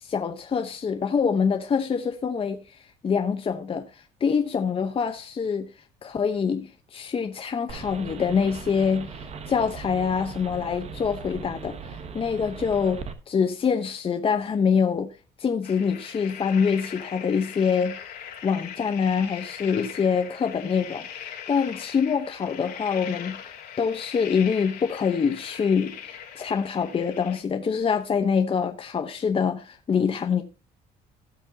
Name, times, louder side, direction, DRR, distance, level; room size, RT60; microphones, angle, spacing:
voice 1, 0.0-2.6 3.0-5.7 6.0-9.1 9.5-11.8 12.1-15.1 15.4-18.0 18.4-30.4, left 6 dB, 35° left, 0.9 m, -25 dB
sound 1, 7.7-13.1, right 5 dB, 40° right, 1.2 m, -39 dB
sound 2, 15.6-27.4, left 9 dB, 70° left, 2.8 m, -40 dB
17.5 x 6.2 x 2.8 m
cardioid pair, 110°, 17 cm